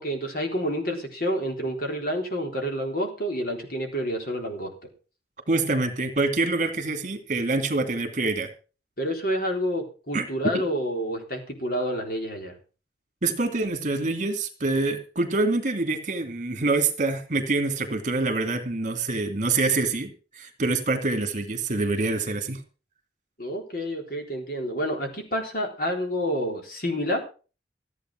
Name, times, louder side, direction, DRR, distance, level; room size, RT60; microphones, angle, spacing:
voice 1, 0.0-4.7 9.0-12.6 23.4-27.2, equal, 50° left, 3 dB, 4.0 m, -29 dB
voice 2, 5.5-8.5 10.1-10.2 13.2-22.6, right 3 dB, 40° right, 6 dB, 2.6 m, -26 dB
15.5 x 8.6 x 6.2 m, 0.36 s
head